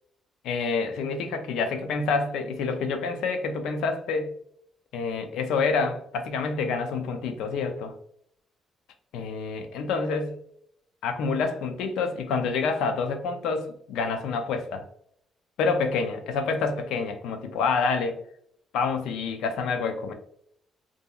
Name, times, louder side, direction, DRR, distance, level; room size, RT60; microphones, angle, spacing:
voice 1, 0.4-4.3 4.9-7.9 9.1-10.4 11.0-14.8 15.6-18.2 18.7-20.1, left 4 dB, 85° left, 6 dB, 0.4 m, -27 dB
2.7 x 2.6 x 2.3 m, 0.70 s
cardioid pair, 90°, 0 cm